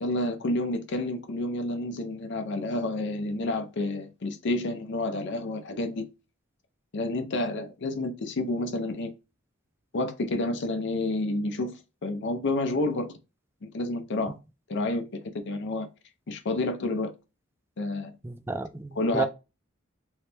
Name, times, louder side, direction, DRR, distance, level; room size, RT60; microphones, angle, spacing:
voice 1, 0.0-6.1 6.9-9.1 9.9-13.1 13.6-14.3 14.7-15.9 16.3-17.1 17.8-18.1 18.9-19.3, left 2 dB, 60° left, 0.6 m, -29 dB
voice 2, 18.2-19.2, right 3 dB, 10° right, 0.3 m, -31 dB
3.2 x 3.1 x 2.9 m
head